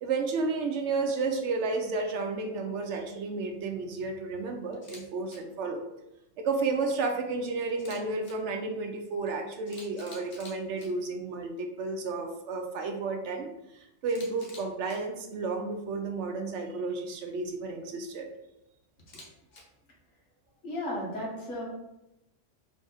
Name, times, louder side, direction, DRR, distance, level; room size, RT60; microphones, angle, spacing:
voice 1, 0.0-5.8 6.4-18.3, right 3 dB, 75° right, 4 dB, 0.9 m, -32 dB
Camera, 4.7-5.0 5.3-5.4 7.7-8.3 9.3-9.4 9.7-10.9 14.1-15.0 19.0-19.6, left 2 dB, 55° left, 1.0 m, -49 dB
voice 2, 20.6-21.6, left 1 dB, 70° left, -4 dB, 1.7 m, -34 dB
3.5 x 2.4 x 3.9 m, 0.90 s
omnidirectional pair, 1.3 m